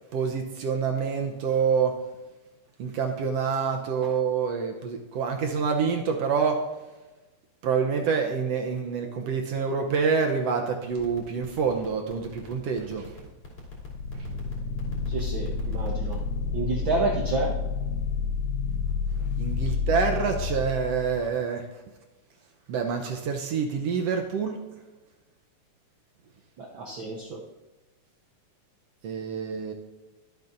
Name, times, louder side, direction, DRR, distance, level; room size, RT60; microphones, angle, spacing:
voice 1, 0.1-2.0 2.8-6.6 7.6-13.1 19.3-21.6 22.7-24.6 29.0-29.7, right 6 dB, 70° right, 3 dB, 1.5 m, -27 dB
sound 1, 10.9-16.3, left 2 dB, 45° left, 3.9 m, -43 dB
sound 2, 13.6-21.3, left 4 dB, 80° left, 1.5 m, -30 dB
voice 2, 15.1-16.2 16.5-17.5 26.6-27.4, right 3 dB, 90° right, 0 dB, 1.0 m, -29 dB
22.5 x 8.2 x 2.6 m, 1.1 s
omnidirectional pair, 3.7 m